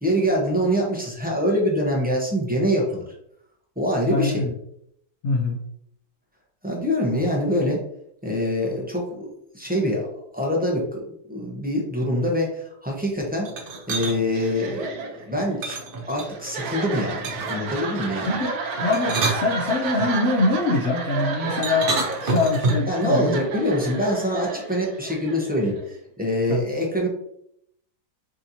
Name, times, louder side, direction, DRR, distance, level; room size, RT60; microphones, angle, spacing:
voice 1, 0.0-3.0 3.8-4.5 6.6-7.8 8.2-10.1 10.3-13.5 13.9-15.8 16.0-18.3 22.9-27.1, equal, 10° right, -2 dB, 0.5 m, -24 dB
voice 2, 4.0-4.5 5.2-5.6 18.3-23.5 26.5-26.6, left 3 dB, 60° left, -2 dB, 0.7 m, -24 dB
sound 1, 13.4-14.2 15.6-16.5 17.2-17.6 18.8-20.1 21.6-23.0, right 3 dB, 50° right, 0.6 m, -27 dB
sound 2, 14.3-26.0, right 4 dB, 65° right, 1.1 m, -32 dB
6.2 x 3.0 x 2.7 m, 0.73 s
omnidirectional pair, 1.9 m